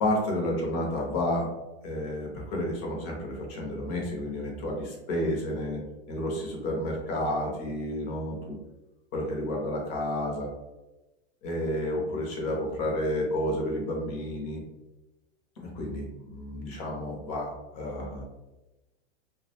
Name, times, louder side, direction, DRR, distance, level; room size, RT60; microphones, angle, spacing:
voice 1, 0.0-1.5 1.8-5.8 6.1-8.6 9.1-10.5 11.4-14.6 15.6-18.2, left 1 dB, 25° left, -1 dB, 0.5 m, -31 dB
2.2 x 2.0 x 2.8 m, 1.0 s
supercardioid pair, 155°, 33 cm